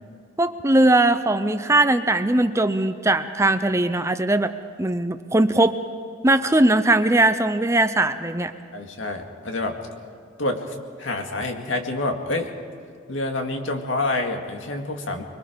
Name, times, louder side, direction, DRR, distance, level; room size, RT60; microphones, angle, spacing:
voice 1, 0.4-4.5 4.8-5.8 6.2-8.5, right 2 dB, 15° right, 10 dB, 0.6 m, -20 dB
voice 2, 8.7-9.8 10.4-12.5 13.1-15.2, left 2 dB, 75° left, 3 dB, 2.1 m, -27 dB
24.5 x 22.5 x 5.2 m, 2.2 s
head